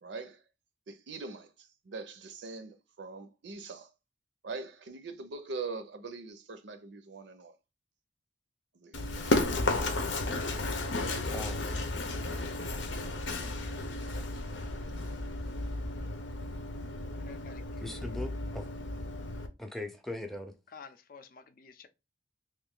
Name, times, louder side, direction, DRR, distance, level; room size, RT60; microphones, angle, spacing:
voice 1, 0.0-0.4 0.9-3.9 4.4-7.6 8.7-9.8, right 4 dB, 75° right, 0.6 m, -43 dB
Run, 8.9-19.5, left 2 dB, 90° left, 0.7 m, -33 dB
voice 2, 11.3-11.6 17.8-18.7 19.6-20.5, left 1 dB, ahead, 0.5 m, -39 dB
voice 3, 17.1-17.8 20.7-21.9, left 5 dB, 50° left, 0.5 m, -51 dB
3.1 x 2.5 x 3.6 m
head